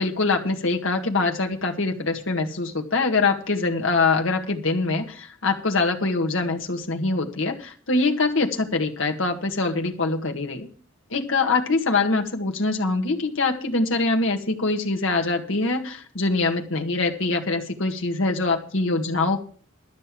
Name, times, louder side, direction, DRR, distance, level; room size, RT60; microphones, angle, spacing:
voice 1, 0.0-10.7 11.1-19.4, left 3 dB, 75° left, 3 dB, 1.7 m, -24 dB
12.5 x 6.6 x 7.5 m, 0.43 s
head